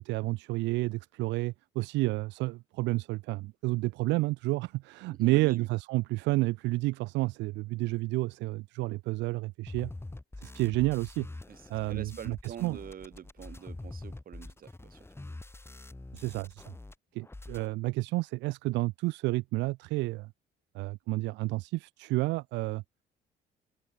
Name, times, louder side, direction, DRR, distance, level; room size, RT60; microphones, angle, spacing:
voice 1, 0.0-9.9 10.4-11.3 11.7-12.8 16.1-16.7 17.1-20.3 20.7-22.8, right 21 dB, 80° right, 0.8 m, -30 dB
voice 2, 5.1-5.7 11.5-15.1, right 9 dB, 50° right, 6.6 m, -45 dB
sound 1, 9.7-16.9 17.2-17.7, left 2 dB, 15° left, 6.5 m, -45 dB
supercardioid pair, 80°, 18 cm